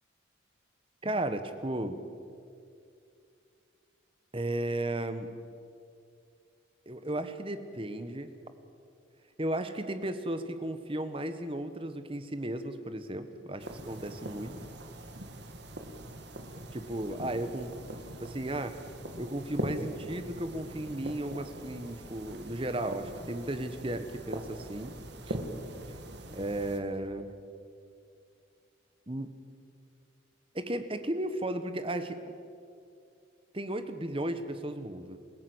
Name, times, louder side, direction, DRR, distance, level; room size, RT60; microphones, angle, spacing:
voice 1, 1.0-2.0 4.3-5.3 6.9-8.3 9.4-14.6 16.7-17.7 18.2-18.8 19.2-25.0 25.2-25.4 26.3-27.3 29.1-29.3 30.5-32.2 33.5-35.2, right 1 dB, 25° right, 9 dB, 1.3 m, -35 dB
sound 1, 13.6-26.8, right 1 dB, 55° right, 1.9 m, -42 dB
28.0 x 16.5 x 8.0 m, 2.4 s
head